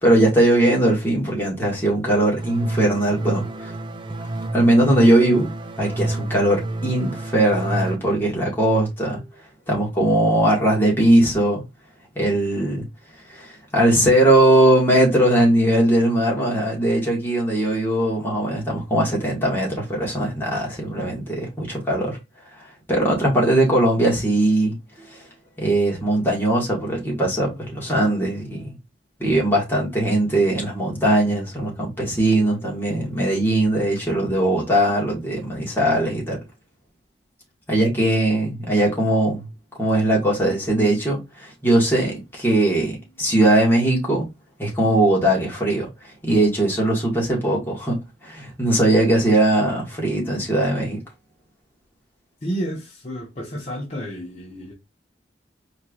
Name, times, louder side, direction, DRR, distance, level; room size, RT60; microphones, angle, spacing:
voice 1, 0.0-3.7 4.5-5.5 5.8-9.2 9.7-11.6 12.2-12.9 13.3-22.2 22.9-25.2 25.6-28.7 29.2-36.4 37.7-39.4 39.8-44.3 44.6-51.0, right 1 dB, 15° left, 1.7 m, -20 dB
sound 1, 2.4-8.0, right 2 dB, 25° right, 0.5 m, -29 dB
voice 2, 52.4-54.7, equal, 40° left, 1.1 m, -31 dB
4.5 x 3.1 x 2.4 m
head